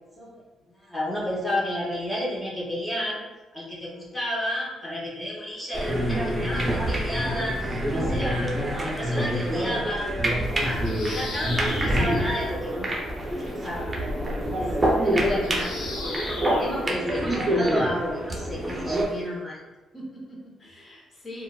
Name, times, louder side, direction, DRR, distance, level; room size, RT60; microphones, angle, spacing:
voice 1, 0.8-3.2 3.5-8.5 8.8-10.1 10.6-13.0 13.4-13.9 15.0-15.7 16.6-19.6, equal, 15° left, -5 dB, 1.1 m, -31 dB
sound 1, 5.7-19.0, right 1 dB, 20° right, 0.7 m, -26 dB
Bird vocalization bird call bird song, 10.4-16.8, left 2 dB, 90° left, 0.6 m, -38 dB
voice 2, 14.7-15.3 16.5-16.9 18.9-19.3 19.9-21.4, equal, 35° left, -3 dB, 0.9 m, -43 dB
3.8 x 2.3 x 2.3 m, 1.1 s
cardioid pair, 90°, 0 cm